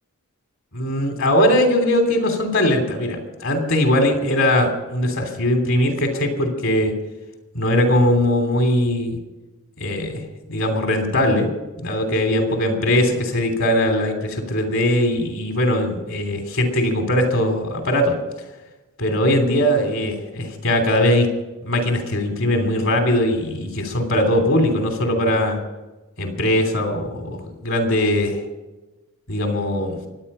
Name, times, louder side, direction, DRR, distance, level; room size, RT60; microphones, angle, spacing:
voice 1, 0.7-6.9 7.5-9.2 9.8-10.2 10.5-11.5 11.8-18.2 19.0-21.3 21.6-25.6 26.2-28.4 29.3-30.0, left 1 dB, 60° left, 5 dB, 3.1 m, -20 dB
24.5 x 9.5 x 5.6 m, 1.1 s
head